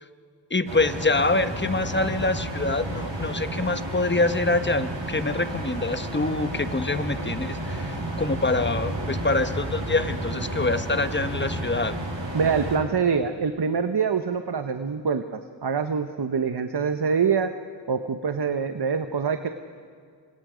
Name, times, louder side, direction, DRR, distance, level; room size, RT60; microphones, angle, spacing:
voice 1, 0.5-12.0, left 3 dB, 25° left, 10 dB, 1.1 m, -25 dB
sound 1, 0.7-12.8, right 1 dB, 80° right, 7.6 m, -31 dB
voice 2, 12.3-17.5 17.9-19.5, right 6 dB, 60° right, 8 dB, 1.0 m, -25 dB
29.5 x 25.5 x 5.1 m, 2.1 s
wide cardioid pair, 55°, 45 cm